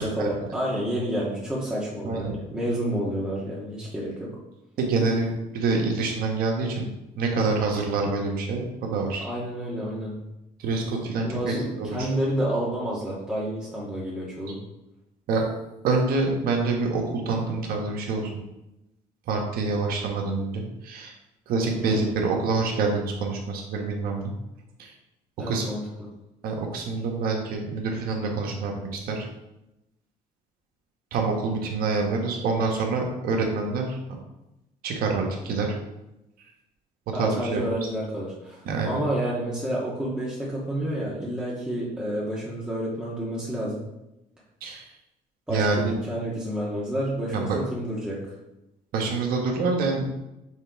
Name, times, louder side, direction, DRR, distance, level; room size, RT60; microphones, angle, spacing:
voice 1, 0.0-4.3 9.2-10.2 11.2-14.6 21.7-22.2 25.4-25.8 37.1-43.8 45.5-48.2, right 1 dB, 5° right, -6 dB, 1.7 m, -29 dB
voice 2, 4.8-6.9 7.2-9.3 10.6-12.1 15.3-15.4 15.8-18.3 19.3-21.1 21.5-24.3 24.8-24.9 25.5-25.6 26.4-29.3 31.1-34.0 34.8-35.8 37.1-37.6 38.6-38.9 44.6-44.9 45.5-45.8 47.3-47.6 48.9-50.3, right 3 dB, 80° right, 1 dB, 1.4 m, -26 dB
6.5 x 3.4 x 4.7 m, 0.93 s
cardioid pair, 85°, 15 cm